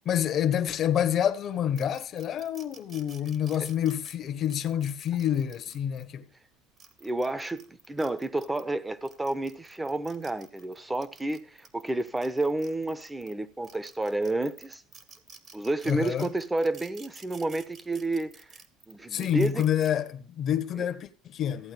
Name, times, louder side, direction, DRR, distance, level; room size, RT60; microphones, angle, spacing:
voice 1, 0.0-6.3 15.9-16.3 19.1-21.7, left 9 dB, 50° left, 1.3 m, -28 dB
sound 1, 1.8-6.0 6.6-8.6 9.0-13.3 13.6-19.9, right 5 dB, 40° right, 1.8 m, -51 dB
voice 2, 7.0-14.8 15.5-18.5 18.9-19.6 20.8-20.9, right 2 dB, 10° right, 1.1 m, -30 dB
15.0 x 8.7 x 3.4 m
supercardioid pair, 90°, 0 cm